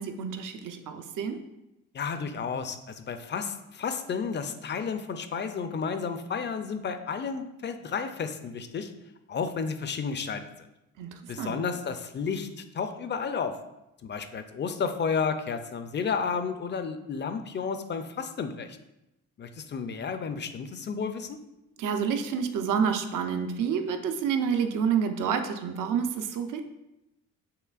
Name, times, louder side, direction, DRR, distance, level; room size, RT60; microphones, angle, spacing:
voice 1, 0.0-1.4 11.0-11.6 21.8-26.6, right 7 dB, 65° right, 6 dB, 0.6 m, -29 dB
voice 2, 1.9-8.9 9.3-10.4 11.3-13.6 14.0-18.8 19.4-21.4, left 5 dB, 30° left, 9 dB, 0.5 m, -32 dB
5.8 x 3.2 x 2.4 m, 0.92 s
supercardioid pair, 60°, 35 cm